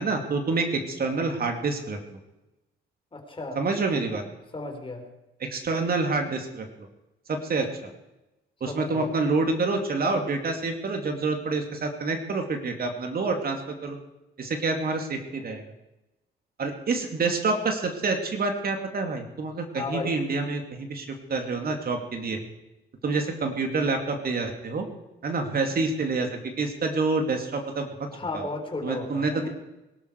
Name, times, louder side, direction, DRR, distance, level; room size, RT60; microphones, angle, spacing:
voice 1, 0.0-2.2 3.5-4.2 5.4-6.7 7.3-7.7 8.6-14.0 14.4-15.6 16.6-22.4 23.0-24.8 25.2-28.1 28.3-28.5 28.8-29.5, right 3 dB, 50° right, 4 dB, 2.7 m, -27 dB
voice 2, 3.1-3.6 4.5-5.0 8.7-9.1 19.7-20.1 28.1-29.5, left 3 dB, 25° left, 3 dB, 4.0 m, -34 dB
21.5 x 12.5 x 4.8 m, 0.97 s
cardioid pair, 90°, 20 cm